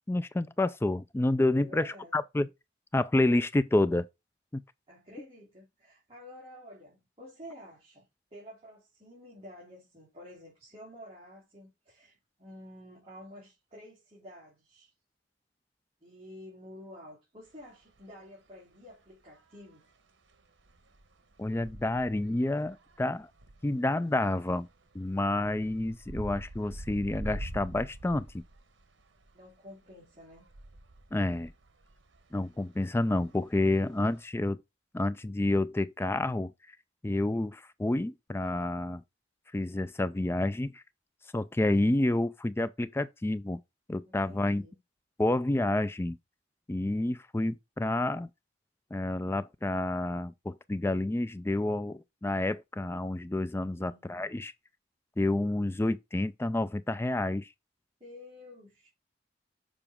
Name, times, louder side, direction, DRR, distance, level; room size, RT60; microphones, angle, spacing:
voice 1, 0.1-2.5 2.9-4.1 4.5-4.6 21.4-23.3 23.6-24.7 24.9-28.3 31.1-31.5 32.3-34.6 34.9-36.5 37.0-39.0 39.5-40.8 41.3-43.6 43.9-44.6 45.2-46.2 46.7-48.3 48.9-54.5 55.2-57.5, left 2 dB, 15° left, 0.3 m, -29 dB
voice 2, 1.6-2.2 4.9-8.0 8.3-14.9 16.0-19.8 29.3-30.4 44.0-44.8 53.7-54.0 58.0-58.9, left 1 dB, 30° right, 3.3 m, -50 dB
sound 1, 17.5-17.6 18.0-18.3 19.3-19.8 20.3-29.5 29.8-34.2, right 1 dB, 80° right, 1.2 m, -45 dB
6.9 x 4.9 x 3.6 m
head